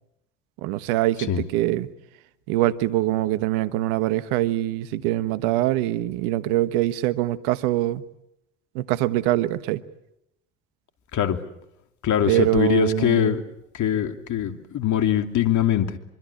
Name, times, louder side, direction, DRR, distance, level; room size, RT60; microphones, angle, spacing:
voice 1, 0.6-1.9 2.5-8.0 8.7-9.8 12.3-13.4, right 15 dB, 75° right, 14 dB, 1.3 m, -23 dB
voice 2, 12.0-13.4 13.7-16.0, left 10 dB, 55° left, 8 dB, 2.7 m, -22 dB
25.0 x 24.5 x 8.5 m, 0.82 s
hypercardioid pair, 65°, 35 cm